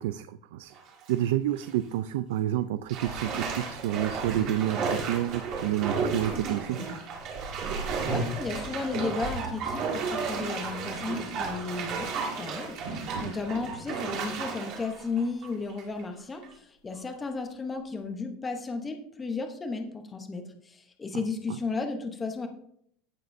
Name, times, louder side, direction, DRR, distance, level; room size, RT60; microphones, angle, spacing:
voice 1, 0.0-0.7 1.1-6.8 13.1-13.3, right 12 dB, 70° right, 11 dB, 0.4 m, -29 dB
Bathtub (filling or washing), 0.7-1.1 1.6-1.7 2.9-16.0 16.4-16.5, right 4 dB, 40° right, 2.0 m, -33 dB
voice 2, 7.8-22.5, left 4 dB, 10° left, 5 dB, 0.8 m, -34 dB
15.5 x 6.6 x 2.6 m, 0.68 s
supercardioid pair, 175°, 0 cm